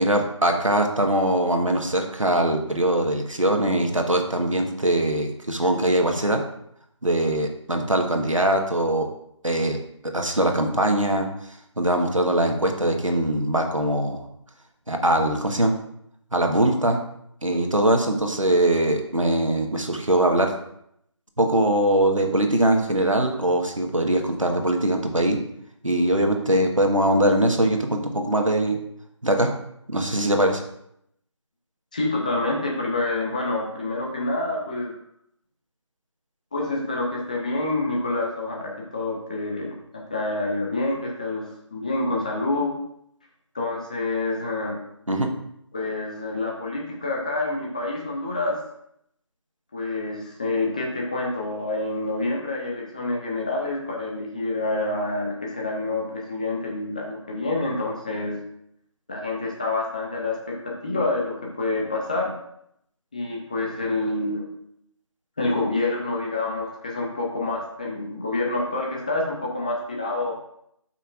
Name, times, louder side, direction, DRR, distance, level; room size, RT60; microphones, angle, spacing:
voice 1, 0.0-6.4 7.0-9.1 9.4-9.8 10.1-11.3 11.8-14.2 14.9-15.7 16.3-17.0 17.4-20.5 21.4-25.4 25.8-28.8 29.2-29.5 29.9-30.6 45.1-45.3, right 1 dB, 90° right, 3 dB, 1.3 m, -22 dB
voice 2, 31.9-35.0 36.5-42.7 43.5-44.8 45.7-48.6 49.7-58.4 59.1-62.3 63.1-64.5 65.4-70.3, left 2 dB, 15° left, -2 dB, 0.6 m, -27 dB
12.0 x 5.7 x 2.5 m, 0.74 s
figure-of-eight pair, 160°, 16 cm